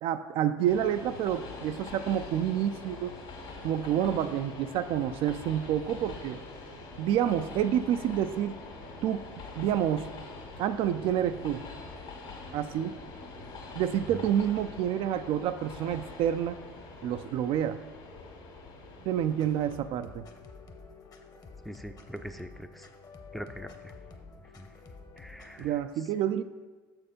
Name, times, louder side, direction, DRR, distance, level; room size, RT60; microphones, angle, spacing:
voice 1, 0.0-3.1 3.6-6.4 7.0-8.6 9.0-9.3 9.6-10.1 10.6-11.7 12.5-13.0 13.8-16.6 17.0-17.8 19.1-20.3 25.6-26.4, right 10 dB, 55° right, 10 dB, 0.4 m, -28 dB
Train, 0.6-19.8, left 3 dB, 60° left, 1.9 m, -44 dB
sound 1, 19.2-25.7, left 4 dB, 35° left, 1.0 m, -49 dB
voice 2, 21.7-22.9 23.3-23.7 24.6-24.7 25.2-25.7, equal, ahead, 7 dB, 0.5 m, -42 dB
6.8 x 4.4 x 5.1 m, 1.3 s
hypercardioid pair, 65°, 11 cm